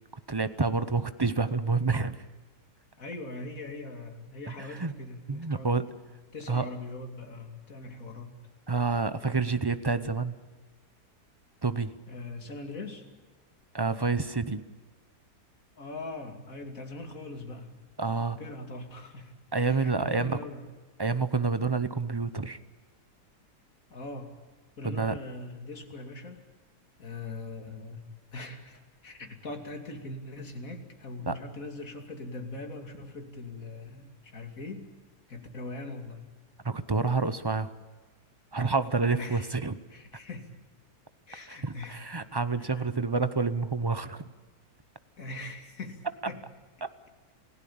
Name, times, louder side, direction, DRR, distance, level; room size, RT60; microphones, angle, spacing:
voice 1, 0.3-2.2 4.6-4.9 5.3-5.9 6.5-6.7 8.7-10.4 11.6-11.9 13.7-14.6 18.0-18.4 19.5-20.4 21.0-22.6 24.8-25.2 31.3-31.4 36.6-37.7 38.5-39.8 41.5-44.2 46.8-46.9, right 4 dB, 25° right, 13 dB, 0.5 m, -28 dB
voice 2, 3.0-5.7 6.3-8.3 12.1-13.0 15.8-17.7 18.3-19.3 19.6-20.6 23.9-24.3 24.8-26.4 27.0-28.0 28.3-34.9 35.3-36.2 39.1-39.5 39.9-40.5 41.3-42.0 42.6-42.9 45.2-46.4, left 2 dB, 55° left, 4 dB, 3.2 m, -41 dB
28.5 x 16.5 x 8.7 m, 1.4 s
omnidirectional pair, 1.7 m